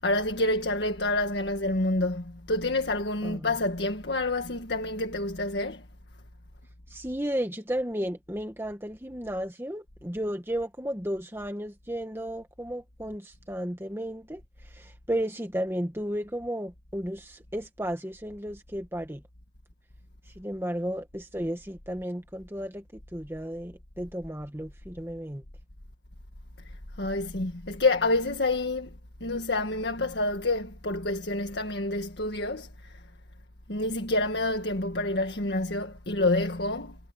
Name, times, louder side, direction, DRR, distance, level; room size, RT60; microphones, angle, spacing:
voice 1, 0.0-5.8 27.0-28.9 29.2-32.7 33.7-37.0, left 2 dB, 75° left, 1.8 m, -28 dB
voice 2, 6.9-14.4 14.7-19.2 20.4-22.8 23.1-25.4, equal, 15° right, 1.6 m, -33 dB
head